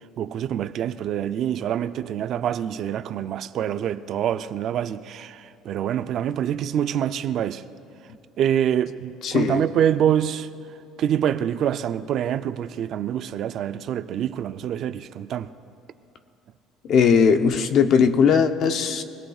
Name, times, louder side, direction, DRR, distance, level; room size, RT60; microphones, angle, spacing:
voice 1, 0.2-5.4 5.7-7.6 8.4-10.5 11.0-15.5, right 10 dB, 50° right, 0.5 m, -25 dB
voice 2, 9.2-9.6 16.9-19.0, left 6 dB, 50° left, 0.9 m, -19 dB
24.0 x 17.5 x 2.4 m
cardioid pair, 135°, 0 cm